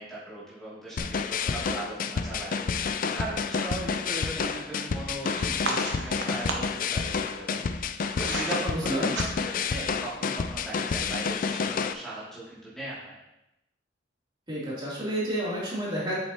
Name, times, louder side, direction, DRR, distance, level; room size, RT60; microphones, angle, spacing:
voice 1, 0.0-2.6 3.1-7.6 8.2-13.2, right 2 dB, 5° left, -9 dB, 2.5 m, -38 dB
sound 1, 1.0-11.9, left 5 dB, 50° left, 0.4 m, -29 dB
sound 2, 5.2-6.8 7.6-8.6 9.0-9.7, right 3 dB, 70° right, 1.1 m, -35 dB
voice 2, 8.7-9.1 14.5-16.2, right 1 dB, 25° right, -8 dB, 2.9 m, -30 dB
7.9 x 7.3 x 2.9 m, 0.89 s
head